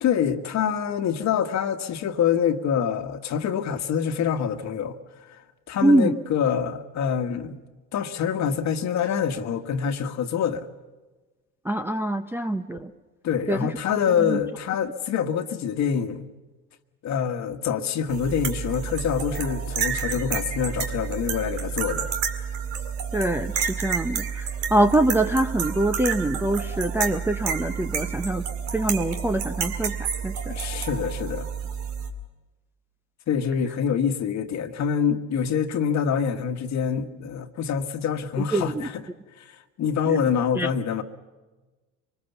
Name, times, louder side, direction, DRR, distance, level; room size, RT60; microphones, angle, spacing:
voice 1, 0.0-5.0 5.3-5.4 5.7-7.6 7.9-10.7 13.2-16.2 17.0-22.1 30.5-31.5 33.3-39.0 39.4-41.0, left 7 dB, 45° left, 1.5 m, -26 dB
voice 2, 5.8-6.2 11.6-12.9 13.5-13.7 14.3-14.4 23.1-28.5 28.7-29.9 30.2-30.3 38.5-38.8 40.1-40.2 40.6-40.7, right 1 dB, 5° right, 0.7 m, -24 dB
sound 1, 18.1-32.1, right 7 dB, 75° right, 2.3 m, -30 dB
25.0 x 20.0 x 7.1 m
supercardioid pair, 90°, 39 cm